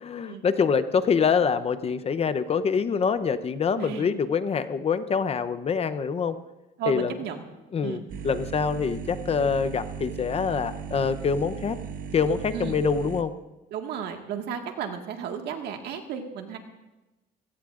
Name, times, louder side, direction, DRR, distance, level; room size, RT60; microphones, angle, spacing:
voice 1, 0.0-6.4 6.9-7.2 7.7-11.8 12.1-13.3, left 6 dB, 35° left, 11 dB, 0.8 m, -25 dB
voice 2, 3.8-4.1 6.8-7.5 7.8-8.0 12.5-12.8 13.7-16.6, right 7 dB, 75° right, 4 dB, 1.8 m, -34 dB
sound 1, 8.1-13.2, right 7 dB, 55° right, 1.1 m, -37 dB
23.0 x 17.0 x 2.5 m, 1.0 s
cardioid pair, 110°, 17 cm